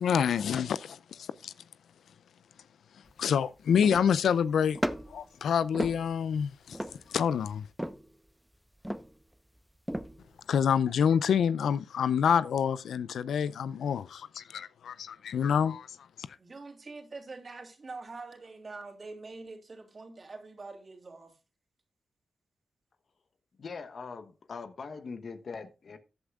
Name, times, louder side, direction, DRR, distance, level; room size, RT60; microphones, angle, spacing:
voice 1, 0.0-1.5 3.2-4.8 5.1-6.8 7.1-7.6 10.5-15.9, left 7 dB, 85° left, 0.4 m, -27 dB
sound 1, 3.1-3.2 3.8-4.3 4.7-5.3 5.7-6.4 6.7-7.2 7.8-8.2 8.8-9.3 9.9-10.3, equal, 5° right, 0.9 m, -35 dB
voice 2, 16.4-21.4, right 3 dB, 50° right, 3.1 m, -45 dB
voice 3, 23.6-26.0, left 5 dB, 65° left, 1.1 m, -41 dB
14.0 x 8.2 x 2.4 m
supercardioid pair, 45°, 0 cm